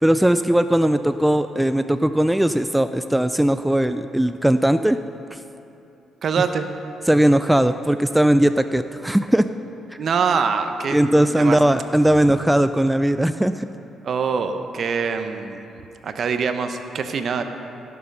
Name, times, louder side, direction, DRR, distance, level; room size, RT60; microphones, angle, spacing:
voice 1, 0.0-5.0 5.3-5.4 7.1-9.5 10.9-13.7, right 1 dB, 5° right, 10 dB, 0.3 m, -18 dB
voice 2, 6.2-6.7 10.0-11.6 14.0-15.7 16.0-17.4, right 5 dB, 55° right, 7 dB, 0.9 m, -24 dB
18.0 x 7.0 x 5.4 m, 2.8 s
cardioid pair, 90°, 0 cm